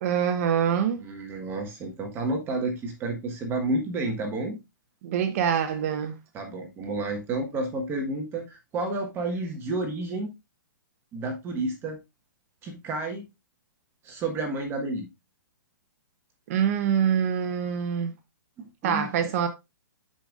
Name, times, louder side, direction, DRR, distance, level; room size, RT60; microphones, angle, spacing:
voice 1, 0.0-1.0 5.0-6.1 16.5-18.1 18.8-19.5, right 8 dB, 45° right, 1.0 m, -25 dB
voice 2, 1.0-4.6 6.3-10.3 11.1-12.0 12.6-13.2 14.0-15.1 18.6-19.4, right 2 dB, 20° right, 1.5 m, -31 dB
10.0 x 5.3 x 2.5 m
hypercardioid pair, 140°, 11 cm